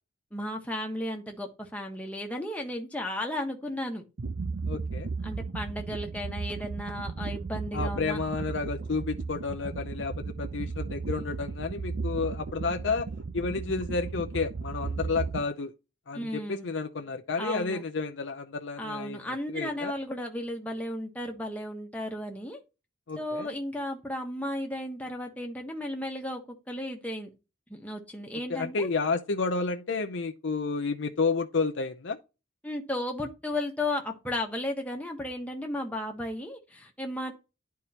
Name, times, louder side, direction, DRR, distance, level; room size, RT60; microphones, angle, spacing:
voice 1, 0.3-4.1 5.2-8.2 16.1-16.7 17.4-17.8 18.8-22.6 23.2-26.4 26.7-27.3 27.7-28.9 32.6-37.3, left 1 dB, 10° left, 1.3 m, -34 dB
sound 1, 4.2-15.4, right 4 dB, 65° right, 0.6 m, -35 dB
voice 2, 4.7-5.1 7.7-13.1 13.3-15.7 16.1-19.2 19.5-19.9 23.1-23.5 28.5-32.2, left 4 dB, 75° left, 0.6 m, -31 dB
11.0 x 4.6 x 2.9 m
head